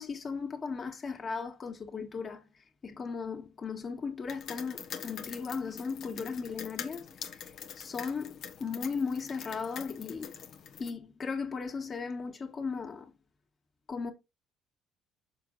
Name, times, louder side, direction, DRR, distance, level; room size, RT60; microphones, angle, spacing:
voice 1, 0.0-2.4 2.8-7.1 7.7-10.3 10.8-13.1 13.9-14.1, left 5 dB, 40° left, 2.1 m, -36 dB
sound 1, 4.3-10.9, left 8 dB, 65° left, 1.3 m, -44 dB
6.7 x 5.0 x 4.0 m
supercardioid pair, 70°, 0 cm